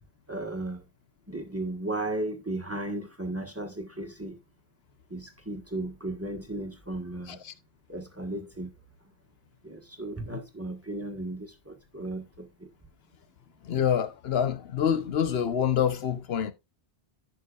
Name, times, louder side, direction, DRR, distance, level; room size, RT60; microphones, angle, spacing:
voice 1, 0.3-0.8 1.3-4.4 5.1-7.4 7.9-8.7 9.6-12.7, right 1 dB, 15° right, 1.4 m, -35 dB
voice 2, 13.6-16.5, left 8 dB, 70° left, 1.1 m, -26 dB
15.0 x 6.1 x 2.4 m
omnidirectional pair, 1.1 m